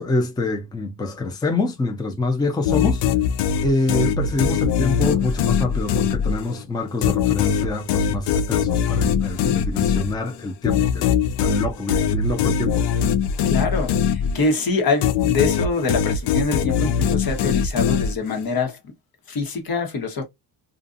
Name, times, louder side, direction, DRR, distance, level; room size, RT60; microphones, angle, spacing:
voice 1, 0.0-3.0 3.6-11.1 11.4-12.8, left 3 dB, 10° left, 0.6 m, -25 dB
sound 1, 2.6-6.6 7.0-14.6 15.0-18.5, left 7 dB, 70° left, 0.5 m, -22 dB
voice 2, 9.1-9.6 13.4-18.8 19.3-20.2, left 3 dB, 55° left, 1.2 m, -25 dB
2.5 x 2.5 x 2.5 m
cardioid pair, 85°, 43 cm